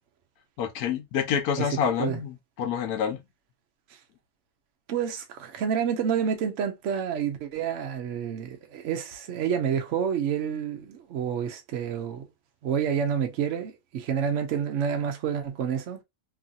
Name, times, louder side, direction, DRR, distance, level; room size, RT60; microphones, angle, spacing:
voice 1, 0.6-3.2, left 7 dB, 85° left, 1.2 m, -27 dB
voice 2, 1.6-2.2 3.9-4.0 4.9-12.3 12.6-16.0, right 8 dB, 65° right, 0.8 m, -29 dB
3.0 x 2.6 x 2.4 m
omnidirectional pair, 1.5 m